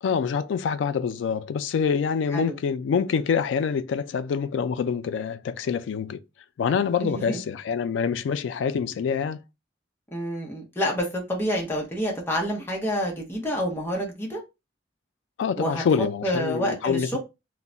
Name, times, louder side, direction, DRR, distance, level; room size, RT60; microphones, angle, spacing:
voice 1, 0.0-6.2 6.6-9.4 15.4-17.2, left 6 dB, 85° left, 0.3 m, -26 dB
voice 2, 7.0-7.4 10.1-14.4 15.6-17.2, equal, 15° left, 0.7 m, -28 dB
2.2 x 2.1 x 3.7 m
head